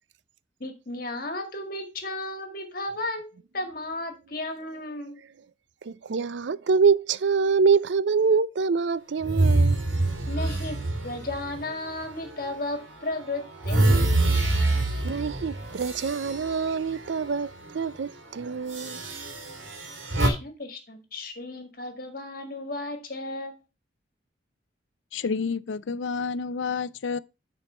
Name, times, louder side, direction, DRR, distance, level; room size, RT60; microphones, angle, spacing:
voice 1, 0.6-5.2 10.3-10.8 11.0-14.2 20.2-23.6, left 2 dB, 50° left, 1.9 m, -34 dB
voice 2, 5.8-9.8 15.0-19.0, right 5 dB, 65° right, 0.4 m, -25 dB
sound 1, 9.2-12.6 13.0-17.3 17.7-17.9 18.7-20.3, right 2 dB, 85° right, 2.6 m, -26 dB
voice 3, 25.1-27.2, left 5 dB, 75° left, 0.5 m, -29 dB
9.6 x 4.6 x 4.4 m
head